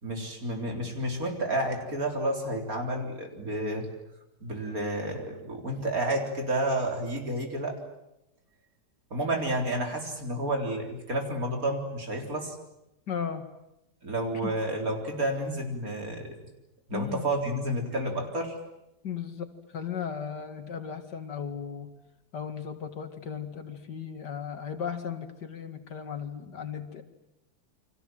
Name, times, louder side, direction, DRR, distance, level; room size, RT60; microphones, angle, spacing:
voice 1, 0.0-3.9 4.4-7.8 9.1-12.5 14.0-16.4 16.9-18.6, right 1 dB, 55° right, 3 dB, 4.4 m, -30 dB
voice 2, 13.1-13.5 14.4-14.5 16.9-17.3 19.0-21.9 22.3-27.0, left 7 dB, 80° left, 8 dB, 2.6 m, -36 dB
29.5 x 24.5 x 7.7 m, 0.87 s
omnidirectional pair, 1.8 m